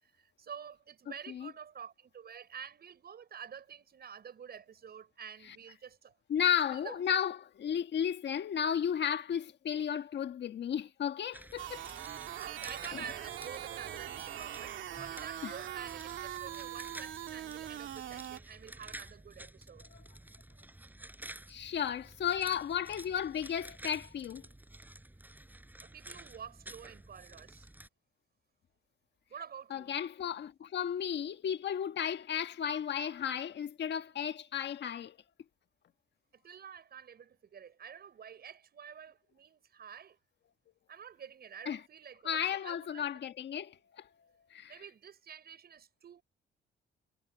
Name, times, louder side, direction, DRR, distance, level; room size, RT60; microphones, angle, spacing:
voice 1, 0.0-6.2 6.7-7.0 12.4-19.9 25.8-27.7 29.3-29.9 36.3-40.2 40.9-43.1 44.7-46.2, right 7 dB, 55° right, 6.6 m, -49 dB
voice 2, 6.3-11.9 12.9-13.0 15.4-15.5 19.9-20.0 21.5-24.5 29.7-35.2 41.7-41.8 42.2-44.1 44.5-44.8, left 8 dB, 60° left, 1.6 m, -34 dB
sound 1, 11.3-27.9, right 1 dB, 10° right, 4.6 m, -51 dB
sound 2, 11.6-18.4, right 11 dB, 75° right, 2.5 m, -42 dB
cardioid pair, 90°, 20 cm